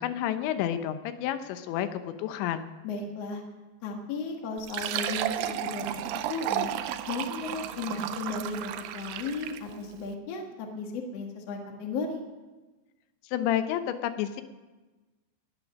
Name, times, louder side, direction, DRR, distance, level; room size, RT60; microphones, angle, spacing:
voice 1, 0.0-2.7 13.3-14.4, left 11 dB, 85° left, 10 dB, 3.2 m, -30 dB
voice 2, 2.8-3.4 3.8-5.9 6.3-6.7 7.1-12.2, left 4 dB, 55° left, 2 dB, 1.8 m, -35 dB
Fill (with liquid), 4.6-9.7, right 12 dB, 80° right, 2.5 m, -33 dB
20.0 x 8.8 x 6.3 m, 1.2 s
omnidirectional pair, 5.1 m